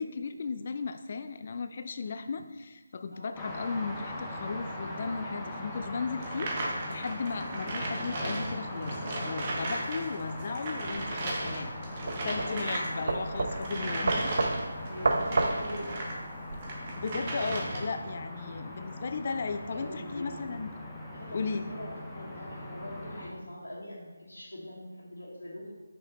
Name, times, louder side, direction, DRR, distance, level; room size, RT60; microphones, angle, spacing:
voice 1, 0.0-6.5 6.9-11.7 12.2-14.3 17.0-20.7 21.3-21.7, left 4 dB, 40° left, 9 dB, 0.4 m, -35 dB
sound 1, 3.3-23.3, left 1 dB, 5° left, 0.9 m, -41 dB
sound 2, 6.2-10.0 10.3-16.2 16.6-18.0, right 1 dB, 30° right, 1.2 m, -36 dB
sound 3, 10.9-16.6, right 3 dB, 55° right, 0.8 m, -31 dB
voice 2, 14.8-16.1 19.4-20.5 21.1-25.7, left 1 dB, 85° left, -8 dB, 1.9 m, -43 dB
6.4 x 5.0 x 4.4 m, 1.2 s
figure-of-eight pair, 160°, 0 cm